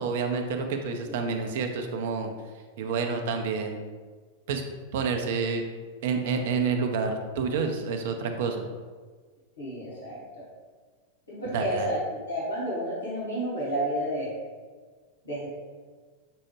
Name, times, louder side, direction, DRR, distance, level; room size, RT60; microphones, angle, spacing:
voice 1, 0.0-2.3 2.8-3.8 4.5-4.6 4.9-5.6 6.0-8.7 11.4-11.9, right 5 dB, 55° right, 5 dB, 0.4 m, -28 dB
voice 2, 9.6-10.4 11.3-12.0 12.3-14.3 15.2-15.5, right 1 dB, 70° left, -6 dB, 1.2 m, -31 dB
6.1 x 2.0 x 3.0 m, 1.5 s
figure-of-eight pair, 90°, 0 cm